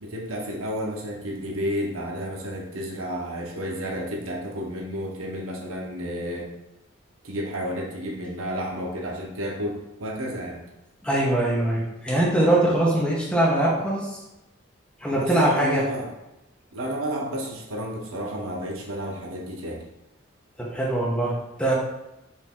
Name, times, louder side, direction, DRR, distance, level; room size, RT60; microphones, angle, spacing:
voice 1, 0.0-6.5 7.2-10.6 15.1-16.1 16.7-19.8, equal, 90° right, 0 dB, 0.9 m, -31 dB
voice 2, 11.0-14.2 15.0-15.8 20.6-21.7, right 1 dB, 5° left, -5 dB, 1.0 m, -22 dB
4.3 x 2.9 x 3.7 m, 0.94 s
head